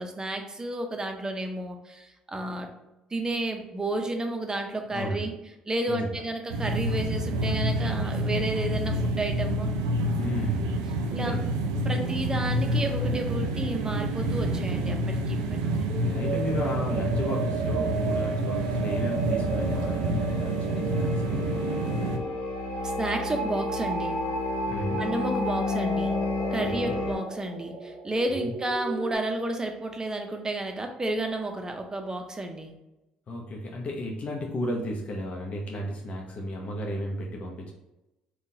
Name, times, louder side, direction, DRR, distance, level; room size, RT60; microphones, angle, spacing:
voice 1, 0.0-2.7 3.1-5.3 5.7-9.7 11.1-11.4 11.8-15.9 22.8-24.2 25.0-26.2 26.5-32.7, right 2 dB, 25° right, 4 dB, 0.6 m, -31 dB
voice 2, 4.9-5.3 5.9-6.2 10.2-10.6 11.0-11.5 15.7-21.4 24.7-25.0 26.6-26.9 28.4-28.5 33.3-37.7, left 1 dB, 45° left, -1 dB, 0.7 m, -33 dB
sound 1, 6.5-22.2, right 1 dB, 85° right, 0.3 m, -28 dB
sound 2, 15.9-29.1, right 3 dB, 55° right, 0.8 m, -34 dB
sound 3, 18.6-27.1, left 3 dB, 85° left, 0.9 m, -32 dB
3.7 x 2.3 x 2.7 m, 0.97 s
hypercardioid pair, 60°, 3 cm